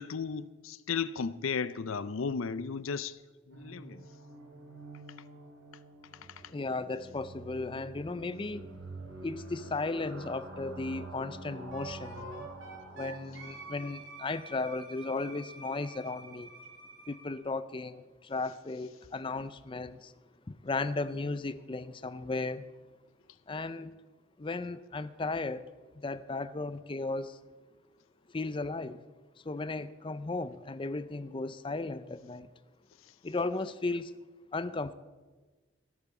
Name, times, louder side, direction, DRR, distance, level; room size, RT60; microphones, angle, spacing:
voice 1, 0.0-3.2 3.5-4.0, left 5 dB, 85° left, 0.5 m, -34 dB
sound 1, 3.5-14.3, right 2 dB, 85° right, 2.9 m, -47 dB
voice 2, 6.5-8.7 9.2-12.5 13.0-16.5 17.1-20.1 20.5-22.6 23.5-24.0 24.4-25.7 26.0-27.4 28.3-29.0 29.5-32.5 33.2-34.1 34.5-34.9, left 3 dB, 25° left, 0.5 m, -35 dB
Wind instrument woodwind instrument, 11.7-17.3, right 3 dB, 65° right, 3.4 m, -48 dB
17.0 x 8.5 x 7.1 m
head